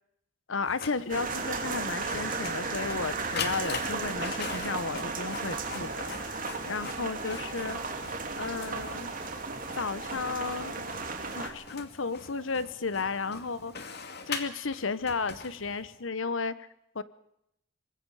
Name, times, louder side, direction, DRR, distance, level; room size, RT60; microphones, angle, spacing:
voice 1, 0.5-7.8 8.4-9.1 9.7-10.9 11.3-13.9 14.3-16.5 16.9-17.0, left 4 dB, 80° left, 15 dB, 1.2 m, -33 dB
Printer, 0.6-16.0, left 5 dB, 55° left, 2.3 m, -42 dB
sound 1, 1.1-11.5, right 4 dB, 45° right, 2.9 m, -35 dB
25.0 x 21.0 x 4.9 m, 0.79 s
head